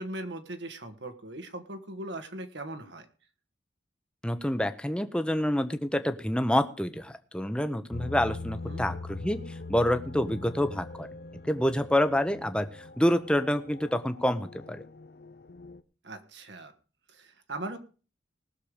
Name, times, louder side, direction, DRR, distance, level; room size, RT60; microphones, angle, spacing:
voice 1, 0.0-3.0 8.6-8.8 16.0-16.7 17.1-17.8, right 1 dB, 75° right, 7 dB, 1.6 m, -39 dB
voice 2, 4.2-9.4 9.7-11.1 11.4-12.7 13.0-14.8, left 1 dB, 5° left, 9 dB, 0.8 m, -27 dB
sound 1, 7.9-15.8, left 3 dB, 55° left, 0.7 m, -42 dB
19.5 x 6.8 x 4.9 m, 0.37 s
head